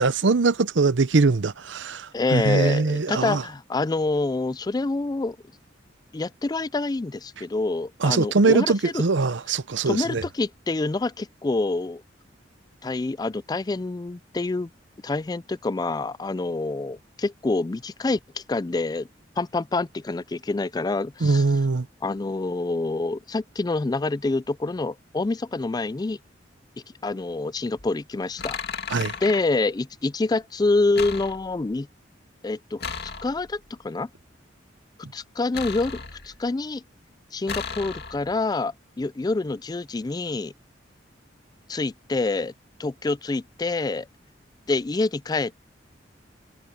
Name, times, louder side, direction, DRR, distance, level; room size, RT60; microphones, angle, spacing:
voice 1, 0.0-3.4 8.0-10.2 21.2-21.9 28.9-29.2, right 3 dB, 80° right, 0.8 m, -22 dB
voice 2, 2.1-5.4 6.1-9.0 9.9-12.0 12.8-14.7 15.0-19.1 19.4-21.4 22.0-26.2 27.0-28.6 29.2-31.9 32.4-34.1 35.1-36.8 37.3-40.5 41.7-42.5 42.8-44.1 44.7-45.5, left 3 dB, 20° left, 0.4 m, -27 dB
sound 1, 27.8-27.9 28.4-29.4 30.9-31.7 32.8-33.6 35.5-36.5 37.5-38.4, left 5 dB, 60° left, 2.6 m, -35 dB
head